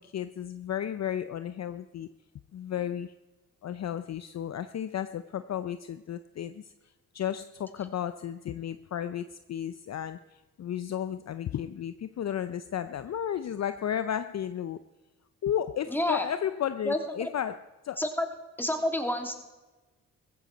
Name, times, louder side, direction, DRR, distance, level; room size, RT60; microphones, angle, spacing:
voice 1, 0.0-2.1 2.5-3.1 3.6-6.7 7.1-14.8 15.4-18.0, left 9 dB, 45° left, 0.6 m, -33 dB
voice 2, 15.9-16.3 16.9-17.0 18.0-18.3 18.6-19.3, left 1 dB, 5° left, 2.6 m, -28 dB
15.5 x 15.0 x 4.1 m
supercardioid pair, 55°, 37 cm